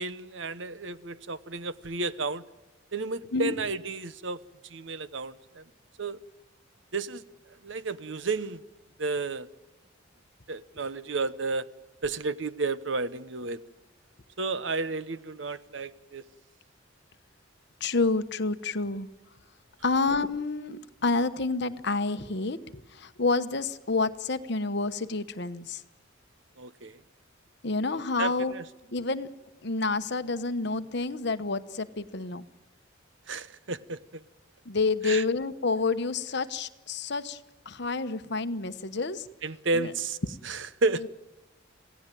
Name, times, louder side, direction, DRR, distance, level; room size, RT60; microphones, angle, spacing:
voice 1, 0.0-2.4 2.9-4.4 4.7-5.6 6.0-6.2 6.9-7.2 7.6-8.6 9.0-9.5 10.5-11.6 12.0-13.6 14.4-16.2 26.6-27.0 27.9-28.6 33.3-34.2 35.0-35.2 39.4-40.2 40.4-41.0, right 3 dB, 65° right, 1.0 m, -32 dB
voice 2, 17.8-19.1 19.8-25.8 27.6-28.5 28.9-29.3 29.6-32.5 34.7-39.3 39.7-39.9 41.0-41.1, left 3 dB, 55° left, 1.1 m, -29 dB
27.0 x 17.0 x 9.2 m
head